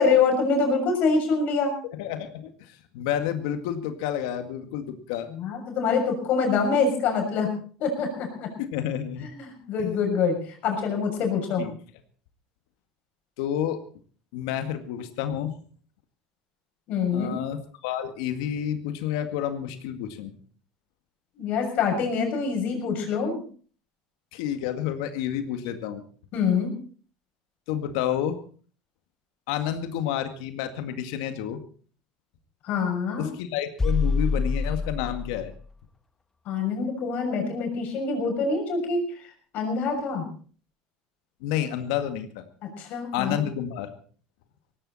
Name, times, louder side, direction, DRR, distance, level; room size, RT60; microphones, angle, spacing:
voice 1, 0.0-1.7 5.3-7.5 7.8-8.5 9.3-11.7 16.9-17.3 21.4-23.4 26.3-26.7 32.6-33.3 36.4-39.0 39.5-40.2 42.6-43.4, left 5 dB, 55° left, 3 dB, 6.5 m, -25 dB
voice 2, 1.9-2.5 2.9-5.3 8.6-9.3 11.6-11.7 13.4-13.8 14.3-15.5 17.1-20.3 24.3-26.0 27.7-28.4 29.5-31.6 33.2-35.5 41.4-42.5 43.1-43.9, left 10 dB, 80° left, 8 dB, 2.0 m, -29 dB
sound 1, 33.8-35.6, left 3 dB, 15° left, 1.1 m, -26 dB
18.0 x 16.0 x 4.3 m, 0.42 s
supercardioid pair, 115°, 3 cm